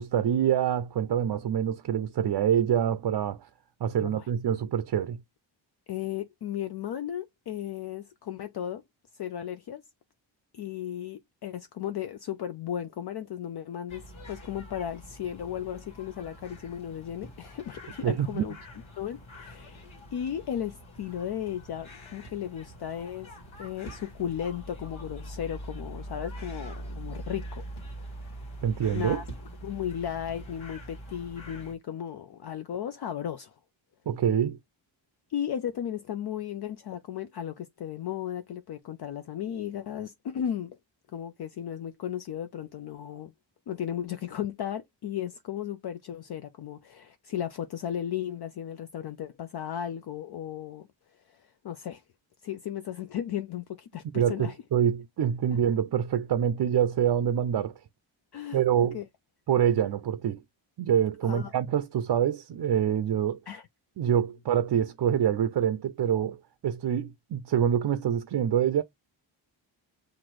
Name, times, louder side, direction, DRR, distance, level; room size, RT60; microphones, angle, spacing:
voice 1, 0.0-3.5 3.8-5.2 18.0-18.4 28.6-29.2 34.1-34.6 54.1-57.8 58.5-59.0 59.5-60.4 60.8-63.4 64.0-68.8, right 9 dB, 55° right, 0.5 m, -26 dB
voice 2, 4.0-4.3 5.9-8.8 9.1-9.8 10.5-18.5 19.0-27.6 28.2-28.3 28.9-29.2 29.6-33.5 35.3-40.8 41.1-43.3 43.7-50.9 51.3-52.0 52.4-54.6 55.5-55.6 58.3-59.1 61.2-61.5 63.5-63.7, left 10 dB, 55° left, 0.5 m, -35 dB
sound 1, 13.9-31.7, right 1 dB, 85° left, 1.6 m, -44 dB
5.8 x 2.6 x 3.0 m
cardioid pair, 55°, 46 cm